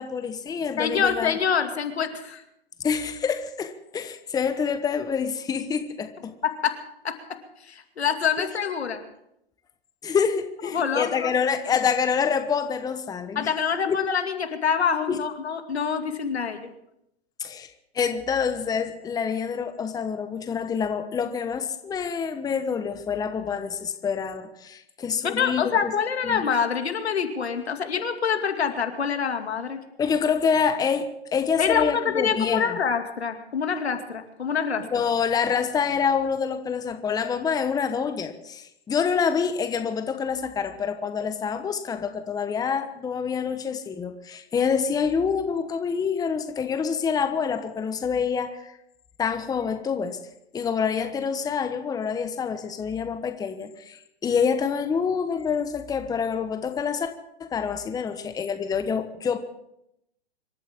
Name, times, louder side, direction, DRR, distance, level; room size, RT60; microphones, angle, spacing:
voice 1, 0.0-1.3 2.8-6.3 10.0-13.5 13.9-14.0 15.1-15.2 17.4-17.7 17.9-25.9 26.2-26.5 30.0-32.8 34.9-48.7 49.2-50.2 50.5-57.1 57.4-59.4, left 6 dB, 10° left, 8 dB, 1.1 m, -27 dB
voice 2, 0.8-2.4 6.4-6.7 7.0-7.1 7.6-9.0 10.6-11.3 13.4-16.7 25.2-29.8 31.6-34.9, left 7 dB, 80° left, 6 dB, 2.4 m, -26 dB
26.0 x 13.5 x 3.7 m, 0.79 s
hypercardioid pair, 125°, 32 cm